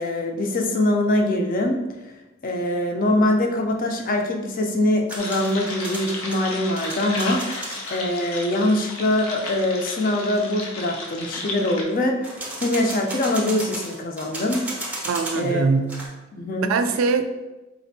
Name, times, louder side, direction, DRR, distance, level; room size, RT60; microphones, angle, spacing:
voice 1, 0.0-1.8 2.4-7.4 7.9-15.1 15.3-15.6 16.3-16.7, left 1 dB, 45° left, 2 dB, 0.4 m, -23 dB
sound 1, 5.1-8.0 12.2-15.5 15.7-16.1, right 1 dB, 5° right, 0.6 m, -34 dB
sound 2, 5.2-11.8, left 2 dB, 90° left, 0.6 m, -34 dB
voice 2, 15.0-16.0 16.6-17.3, right 4 dB, 85° right, 8 dB, 0.3 m, -22 dB
4.2 x 2.6 x 2.6 m, 1.1 s
head